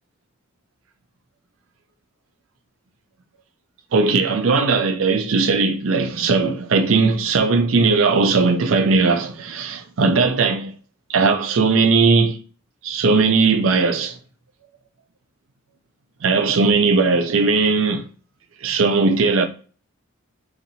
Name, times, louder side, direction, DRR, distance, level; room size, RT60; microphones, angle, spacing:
voice 1, 3.9-10.7 11.1-12.4 12.8-14.2 16.2-18.0 18.6-19.5, right 4 dB, 70° right, 0.5 m, -18 dB
4.0 x 2.5 x 2.7 m
head